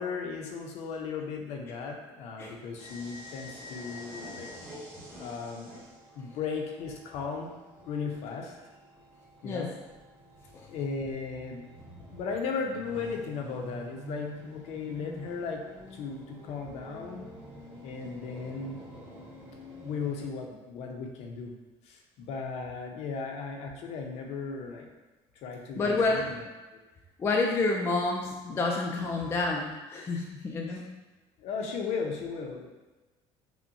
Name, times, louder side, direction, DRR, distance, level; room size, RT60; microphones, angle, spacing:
voice 1, 0.0-4.5 5.2-5.7 6.1-7.5 7.8-8.5 9.4-9.7 10.7-11.6 12.0-15.6 15.9-17.2 17.8-18.8 19.8-21.5 21.8-24.9 25.4-26.5 30.7-30.8 31.4-32.8, left 5 dB, 60° left, 2 dB, 0.6 m, -36 dB
sound 1, 2.8-20.3, equal, 15° right, 1.1 m, -47 dB
voice 2, 25.8-26.3 27.2-30.9, left 3 dB, 20° left, -1 dB, 0.3 m, -29 dB
5.5 x 2.1 x 2.6 m, 1.2 s
cardioid pair, 155°, 12 cm